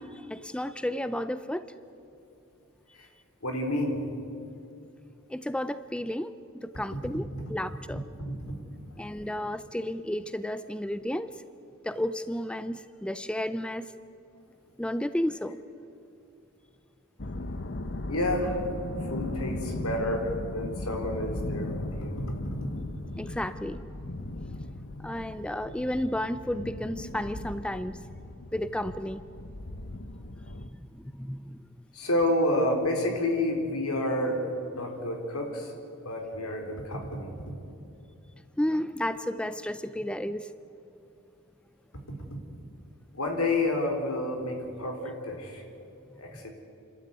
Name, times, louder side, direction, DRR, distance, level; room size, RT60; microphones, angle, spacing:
voice 1, 0.0-1.7 5.3-7.2 7.5-8.0 9.0-11.4 11.8-13.9 14.8-15.6 23.2-23.9 25.0-28.1 28.5-29.2 30.5-31.6 38.6-40.5, left 1 dB, 5° left, 13 dB, 0.5 m, -32 dB
voice 2, 3.4-4.0 8.5-8.6 9.2-9.3 18.1-18.7 19.1-22.6 31.9-34.5 34.7-35.7 36.0-37.3 43.1-45.6 46.2-46.5, left 1 dB, 75° left, 3 dB, 4.1 m, -29 dB
sound 1, 17.2-30.7, left 2 dB, 50° left, 1.0 m, -37 dB
29.5 x 13.0 x 9.7 m, 2.7 s
head